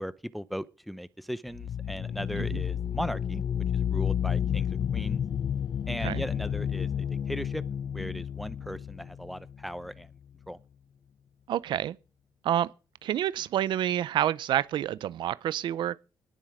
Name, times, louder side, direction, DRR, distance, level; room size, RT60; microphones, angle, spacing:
voice 1, 0.0-3.4 3.7-5.2 5.9-7.6 7.9-10.1 10.5-10.6, equal, ahead, 0.7 m, -37 dB
sound 1, 1.5-10.2, left 9 dB, 55° left, 0.6 m, -31 dB
voice 2, 11.5-12.0 12.4-12.7 13.0-16.0, right 11 dB, 80° right, 0.6 m, -28 dB
19.0 x 7.4 x 4.9 m
cardioid pair, 95°, 8 cm